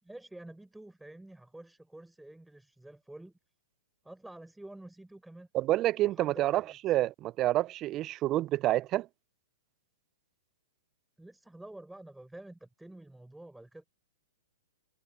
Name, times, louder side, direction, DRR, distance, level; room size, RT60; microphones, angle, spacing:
voice 1, 0.0-3.3 4.0-5.5 6.0-7.0 11.2-13.8, right 1 dB, 5° right, 4.8 m, -49 dB
voice 2, 5.5-9.1, right 15 dB, 30° right, 0.5 m, -28 dB
hypercardioid pair, 115°, 0 cm